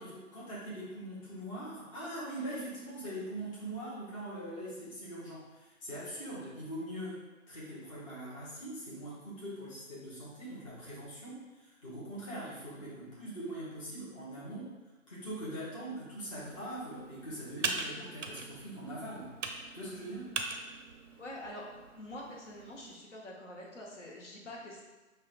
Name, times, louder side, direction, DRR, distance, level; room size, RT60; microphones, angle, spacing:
voice 1, 0.0-7.2 7.5-14.7 15.1-19.3 19.7-20.3, right 1 dB, 25° left, -9 dB, 0.7 m, -42 dB
Computer keyboard, 16.2-23.0, right 4 dB, 65° right, 0.5 m, -41 dB
voice 2, 21.2-24.8, left 1 dB, 60° left, -3 dB, 0.9 m, -46 dB
5.4 x 2.1 x 2.4 m, 1.2 s
figure-of-eight pair, 145°, 41 cm